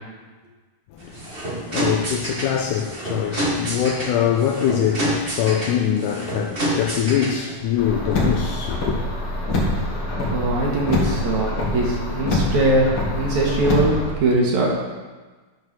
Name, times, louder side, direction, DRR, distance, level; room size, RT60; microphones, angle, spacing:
voice 1, 0.9-9.0, left 9 dB, 80° left, 2.1 m, -23 dB
sound 1, 1.0-7.5, right 1 dB, 90° right, 0.5 m, -28 dB
Car, 7.8-14.1, left 1 dB, 50° left, 2.1 m, -24 dB
voice 2, 10.3-13.9 14.2-14.8, right 2 dB, 60° right, 2.9 m, -21 dB
11.5 x 4.6 x 6.1 m
omnidirectional pair, 4.0 m